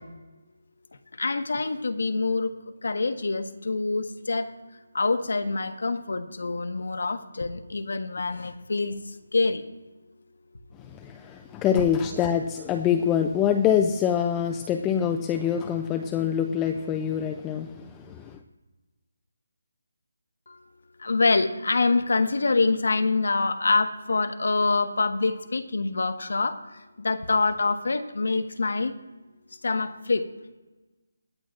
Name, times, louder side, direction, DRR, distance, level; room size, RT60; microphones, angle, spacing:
voice 1, 1.2-2.5 2.8-4.4 4.9-8.9 9.3-9.6 21.0-26.6 27.0-28.9 29.6-30.2, left 3 dB, 70° left, 0.9 m, -25 dB
voice 2, 10.8-18.4, left 8 dB, 10° left, 0.3 m, -25 dB
23.0 x 8.8 x 2.4 m
hypercardioid pair, 175°, 0 cm